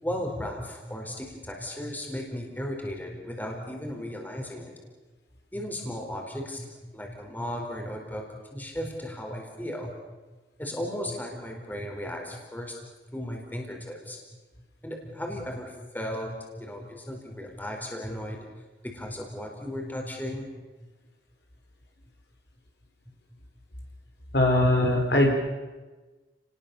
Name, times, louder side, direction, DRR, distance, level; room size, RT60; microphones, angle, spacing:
voice 1, 0.0-4.7 5.5-9.9 10.6-12.8 13.1-14.2 14.8-18.5 18.8-20.5, left 1 dB, 10° left, 1 dB, 4.3 m, -35 dB
voice 2, 24.3-25.3, left 1 dB, 65° left, 2 dB, 4.8 m, -21 dB
30.0 x 20.0 x 7.0 m, 1.2 s
head